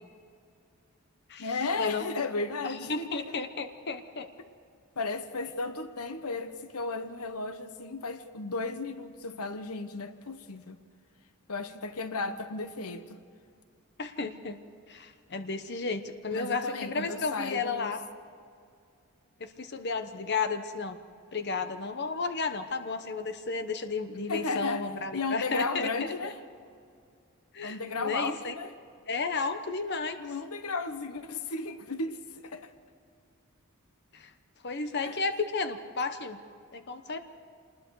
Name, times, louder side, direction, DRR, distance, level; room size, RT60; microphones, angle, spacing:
voice 1, 1.4-3.3 5.0-10.8 11.5-13.2 16.3-17.9 24.3-24.9 25.1-26.4 27.6-28.7 30.2-32.7 35.0-35.2, left 3 dB, 85° left, 1.1 m, -34 dB
voice 2, 2.9-4.3 14.0-14.6 14.9-18.0 19.4-21.0 21.3-26.3 27.5-28.5 29.1-30.2 34.1-34.3 34.6-36.4 36.7-37.2, left 4 dB, 50° left, 1.0 m, -33 dB
26.5 x 20.5 x 4.8 m
head